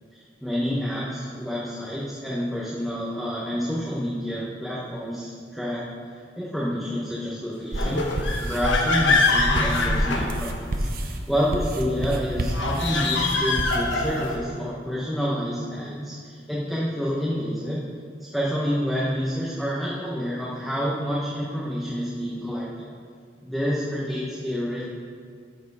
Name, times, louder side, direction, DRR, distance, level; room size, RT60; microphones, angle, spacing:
voice 1, 0.1-5.8 6.1-17.8 18.2-22.9 23.4-24.8, equal, ahead, -7 dB, 1.1 m, -28 dB
sound 1, 7.7-10.9 12.5-14.5, left 3 dB, 80° left, 1.1 m, -24 dB
sound 2, 7.7-14.4, right 1 dB, 55° right, 0.7 m, -30 dB
13.5 x 4.6 x 4.8 m, 2.1 s
head